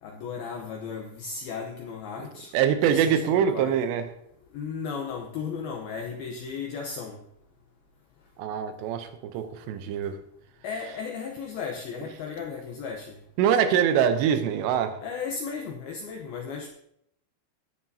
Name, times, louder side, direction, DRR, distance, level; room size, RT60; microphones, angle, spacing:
voice 1, 0.0-2.5 2.8-3.8 4.5-7.2 10.6-13.2 15.0-16.7, left 5 dB, 85° left, 2.1 m, -35 dB
voice 2, 2.5-4.1 8.4-10.2 13.4-15.0, right 8 dB, 80° right, 2.6 m, -24 dB
18.0 x 9.6 x 2.8 m
omnidirectional pair, 5.7 m